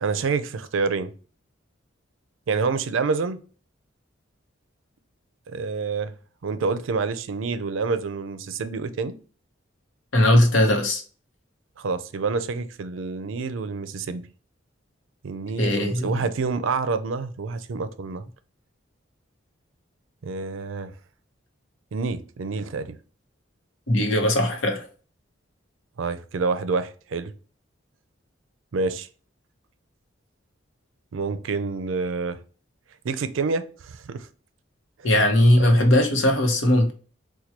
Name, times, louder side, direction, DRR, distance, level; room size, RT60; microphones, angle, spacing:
voice 1, 0.0-1.1 2.5-3.4 5.5-6.1 6.4-9.1 11.8-14.3 15.2-18.2 20.2-20.9 21.9-23.0 26.0-27.3 28.7-29.1 31.1-32.4 33.0-34.3 35.0-35.1 35.6-35.8, right 4 dB, 85° right, 0.4 m, -27 dB
voice 2, 10.1-11.0 15.6-16.2 23.9-24.9 35.0-36.9, left 1 dB, 80° left, 0.9 m, -19 dB
4.5 x 2.2 x 2.8 m
head